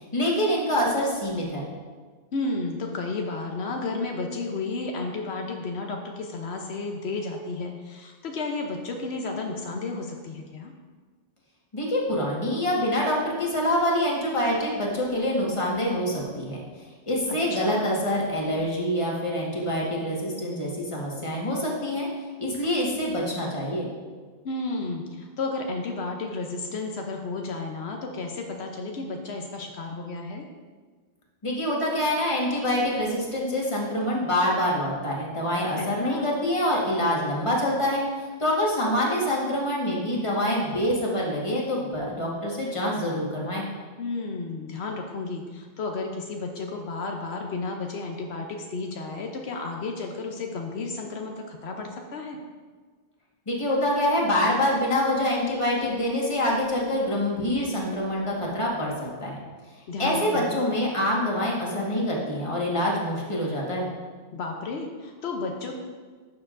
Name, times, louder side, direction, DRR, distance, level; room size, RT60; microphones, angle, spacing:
voice 1, 0.1-1.7 11.7-16.6 17.1-22.1 22.4-23.9 31.4-38.0 38.4-43.6 53.5-59.4 60.0-63.9, left 1 dB, 30° left, -3 dB, 1.5 m, -26 dB
voice 2, 2.3-10.7 17.5-18.0 24.4-30.4 35.8-36.3 44.0-52.4 59.9-60.6 64.3-65.7, left 3 dB, 80° left, 2 dB, 1.0 m, -32 dB
12.0 x 6.7 x 2.5 m, 1.5 s
omnidirectional pair, 1.1 m